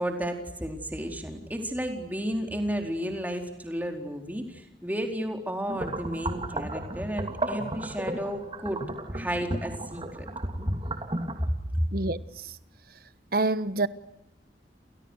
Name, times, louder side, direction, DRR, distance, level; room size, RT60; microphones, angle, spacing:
voice 1, 0.0-8.8 9.1-10.3 11.7-11.9, equal, 10° right, 4.4 m, -32 dB
sound 1, 5.7-11.5, right 1 dB, 30° right, 2.7 m, -33 dB
voice 2, 13.3-13.9, right 2 dB, 55° right, 1.3 m, -25 dB
30.0 x 29.5 x 6.6 m
head